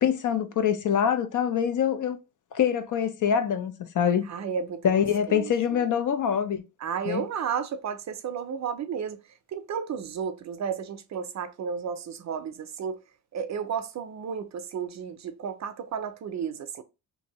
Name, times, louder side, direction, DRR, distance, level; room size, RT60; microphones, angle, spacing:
voice 1, 0.0-2.2 2.5-4.3 4.8-6.6 7.1-7.2, left 8 dB, 55° left, 0.5 m, -25 dB
voice 2, 4.3-4.9 5.3-5.8 6.8-9.2 9.5-13.0 13.3-16.8, right 7 dB, 50° right, 0.4 m, -33 dB
2.6 x 2.6 x 2.9 m
cardioid pair, 95°, 36 cm